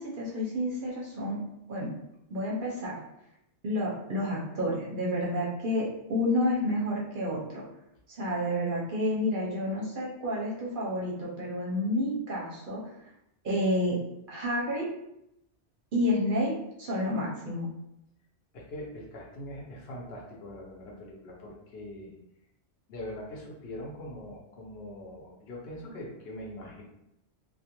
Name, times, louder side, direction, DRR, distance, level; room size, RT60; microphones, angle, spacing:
voice 1, 0.0-1.4 1.7-1.9 2.3-3.0 3.6-7.6 8.1-12.9 13.4-14.0 14.3-14.9 15.9-16.5 16.8-17.7, left 1 dB, 55° right, -5 dB, 0.7 m, -30 dB
voice 2, 18.5-22.1 22.9-26.8, left 1 dB, 65° left, -1 dB, 0.8 m, -42 dB
2.4 x 2.1 x 2.8 m, 0.82 s
omnidirectional pair, 1.2 m